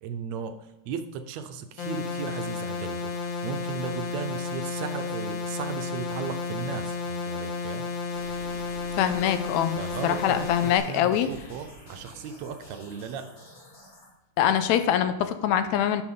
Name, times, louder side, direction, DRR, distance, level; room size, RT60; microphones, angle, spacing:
voice 1, 0.0-7.9 9.8-13.3, right 6 dB, 75° right, 8 dB, 1.8 m, -36 dB
sound 1, 1.8-10.8, left 4 dB, 60° left, 1.9 m, -32 dB
sound 2, 8.1-14.1, equal, 30° left, 2.2 m, -48 dB
voice 2, 9.0-9.8 10.0-11.3 14.4-16.0, left 10 dB, 80° left, 10 dB, 1.8 m, -24 dB
12.0 x 6.3 x 3.6 m, 1.0 s
omnidirectional pair, 3.5 m